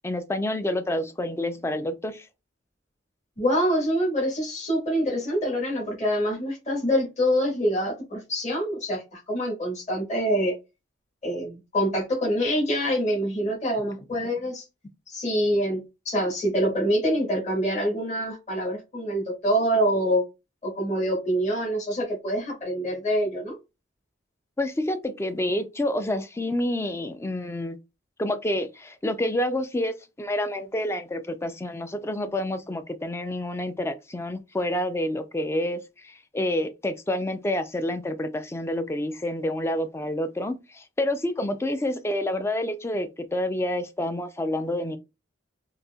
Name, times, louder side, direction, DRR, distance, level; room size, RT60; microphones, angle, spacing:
voice 1, 0.0-2.3 14.1-14.2 24.6-27.8 28.2-45.0, left 1 dB, 15° left, 0.3 m, -28 dB
voice 2, 3.4-10.5 11.2-14.6 15.1-20.2 20.6-23.5, equal, 35° left, 1.5 m, -25 dB
4.0 x 2.7 x 2.2 m
head